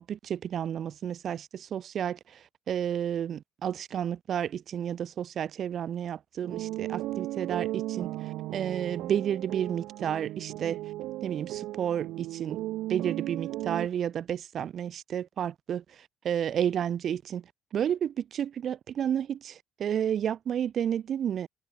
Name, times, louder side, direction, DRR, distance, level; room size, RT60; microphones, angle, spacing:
voice 1, 0.0-10.8 11.2-12.6 12.9-17.5 17.7-21.5, right 9 dB, 45° right, 0.4 m, -31 dB
sound 1, 6.4-13.9, right 16 dB, 70° right, 2.1 m, -35 dB
cardioid pair, 110°, 0 cm